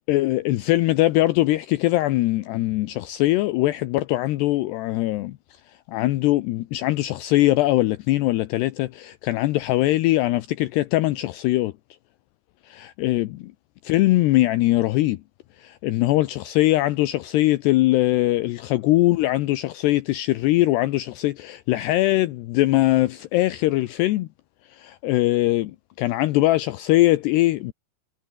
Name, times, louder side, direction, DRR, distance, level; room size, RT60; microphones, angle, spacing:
voice 1, 0.1-5.4 5.9-11.7 12.7-13.5 13.8-15.2 15.6-24.3 24.7-27.7, left 17 dB, 75° left, 2.8 m, -21 dB
omnidirectional pair, 5.2 m